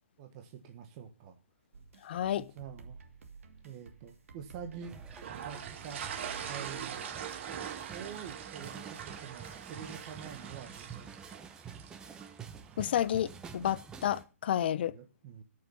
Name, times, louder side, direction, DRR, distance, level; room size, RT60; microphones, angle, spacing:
voice 1, 0.2-1.4 2.3-3.0 3.6-4.9 5.3-6.0 6.4-7.0 7.9-11.1 14.7-15.4, right 7 dB, 30° right, 1.4 m, -46 dB
sound 1, 1.7-7.1, right 5 dB, 75° right, 2.7 m, -52 dB
voice 2, 2.0-2.5 12.8-14.9, left 10 dB, 45° left, 0.8 m, -31 dB
sound 2, 4.8-14.2, right 6 dB, 10° right, 0.9 m, -48 dB
sound 3, 5.1-12.4, right 8 dB, 55° right, 2.6 m, -42 dB
13.5 x 6.8 x 7.1 m
hypercardioid pair, 160°, 8 cm